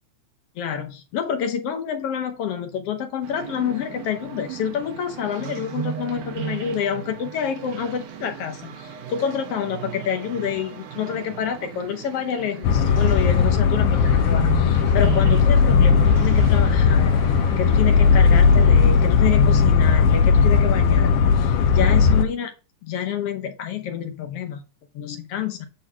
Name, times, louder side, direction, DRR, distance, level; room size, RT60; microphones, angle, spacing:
voice 1, 0.6-17.2 17.6-22.5 22.8-24.6 24.9-25.7, left 8 dB, 65° left, 7 dB, 1.6 m, -28 dB
sound 1, 3.2-18.9, right 8 dB, 85° right, 2.7 m, -36 dB
sound 2, 12.6-22.3, left 5 dB, 85° left, 2.2 m, -17 dB
9.0 x 4.0 x 4.5 m, 0.34 s
omnidirectional pair, 3.5 m